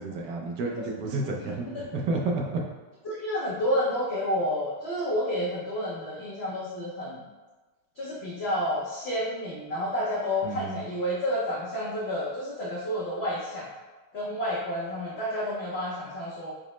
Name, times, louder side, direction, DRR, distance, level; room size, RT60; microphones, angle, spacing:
voice 1, 0.0-2.6 10.4-10.9, right 3 dB, 75° right, 0 dB, 1.1 m, -31 dB
voice 2, 3.0-7.2 8.0-13.7 14.1-16.5, equal, 70° left, -7 dB, 0.6 m, -30 dB
4.9 x 2.0 x 3.0 m, 1.2 s
omnidirectional pair, 1.9 m